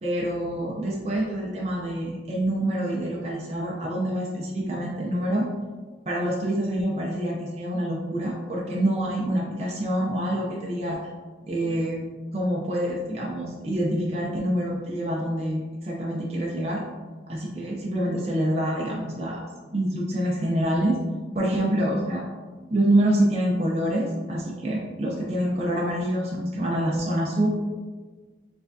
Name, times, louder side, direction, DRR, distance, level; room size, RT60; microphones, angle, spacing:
voice 1, 0.0-5.5 6.1-11.0 11.5-12.0 12.3-16.8 17.3-19.4 19.7-21.0 21.3-22.2 22.7-27.5, right 1 dB, 35° right, -3 dB, 0.5 m, -26 dB
4.7 x 3.3 x 2.6 m, 1.4 s
head